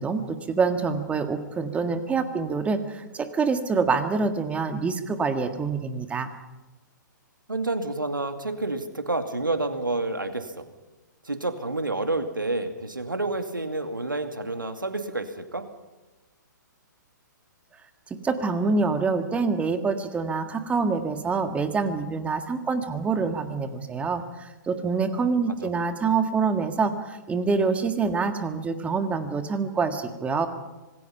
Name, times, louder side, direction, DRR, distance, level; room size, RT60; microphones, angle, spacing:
voice 1, 0.0-6.3 18.2-30.5, right 4 dB, 10° right, 8 dB, 1.7 m, -26 dB
voice 2, 7.5-10.7 11.2-15.7 25.3-25.7, right 2 dB, 90° right, 7 dB, 2.4 m, -29 dB
26.0 x 19.0 x 5.7 m, 1.1 s
figure-of-eight pair, 120°, 11 cm